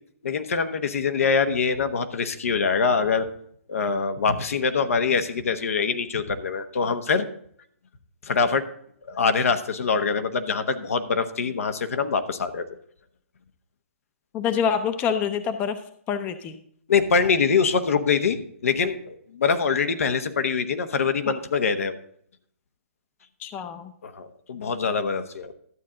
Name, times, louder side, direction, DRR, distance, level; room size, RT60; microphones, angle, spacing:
voice 1, 0.2-3.3 3.7-7.3 8.2-8.6 9.1-12.6 16.9-22.0 24.0-25.5, left 5 dB, 70° left, 9 dB, 1.0 m, -24 dB
voice 2, 14.3-15.8 16.1-16.6 23.4-23.9, left 7 dB, 20° left, 10 dB, 0.6 m, -26 dB
12.5 x 7.5 x 3.8 m, 0.66 s
hypercardioid pair, 140°, 8 cm